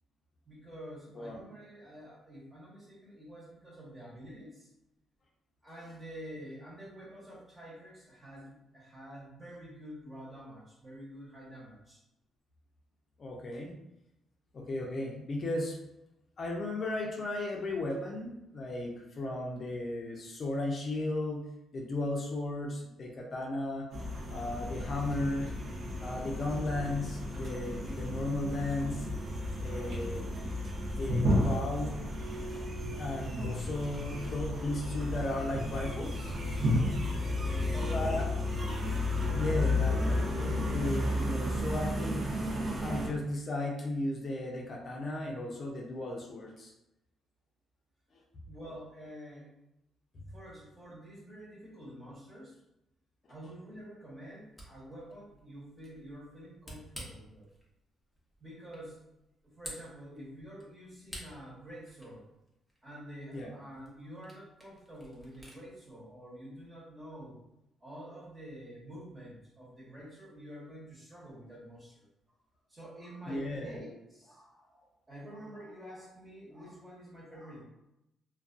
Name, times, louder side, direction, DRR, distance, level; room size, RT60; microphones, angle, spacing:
voice 1, 0.4-4.7 5.6-12.0 37.4-38.5 48.4-49.5 50.1-52.6 53.3-57.5 58.4-59.0 59.4-62.2 62.8-67.4 67.8-72.1 72.7-77.6, equal, 25° right, -6 dB, 1.1 m, -48 dB
voice 2, 1.1-1.5 13.2-13.7 14.5-15.7 16.4-21.4 21.7-23.9 24.3-25.5 26.0-29.0 29.6-30.4 31.0-31.9 33.0-36.3 37.9-38.3 39.3-40.3 40.7-42.3 42.8-46.7 63.3-63.5 73.3-73.8, left 2 dB, 50° left, 0 dB, 0.5 m, -35 dB
sound 1, 23.9-43.1, left 1 dB, 65° right, 0.6 m, -33 dB
Camera, 54.3-65.6, equal, 5° right, 0.8 m, -52 dB
2.3 x 2.2 x 2.5 m, 0.87 s
cardioid pair, 90°, 0 cm